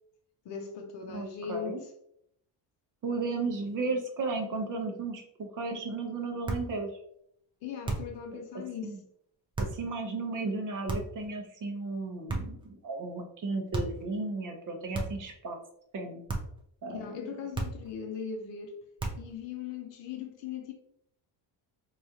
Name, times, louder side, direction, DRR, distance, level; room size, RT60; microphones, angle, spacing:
voice 1, 0.4-1.9 7.6-9.0 16.9-18.7 19.2-20.7, left 7 dB, 60° left, 2 dB, 0.7 m, -39 dB
voice 2, 1.1-1.8 3.0-6.9 8.8-9.0 9.6-15.6 15.9-16.2 16.8-17.0, right 3 dB, 40° right, 3 dB, 0.7 m, -34 dB
sound 1, 6.4-6.8 7.8-8.2 9.5-9.8 10.9-11.3 12.3-12.7 13.7-14.1 14.9-15.3 16.3-16.6 17.5-18.0 19.0-19.4, right 2 dB, 10° right, 0.4 m, -34 dB
4.8 x 2.4 x 2.7 m, 0.72 s
cardioid pair, 155°, 49 cm